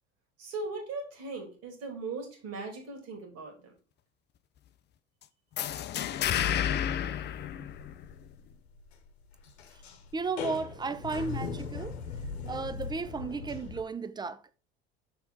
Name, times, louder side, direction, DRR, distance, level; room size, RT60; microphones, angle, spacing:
voice 1, 0.4-3.7, right 3 dB, 50° right, 2.5 m, -39 dB
sound 1, 5.6-8.3, left 10 dB, 35° left, 0.5 m, -31 dB
sound 2, 7.4-13.8, left 6 dB, 75° left, 1.0 m, -39 dB
voice 2, 10.1-12.0 12.5-14.4, right 4 dB, 15° right, 0.5 m, -34 dB
6.4 x 4.6 x 3.9 m
figure-of-eight pair, 65°, 32 cm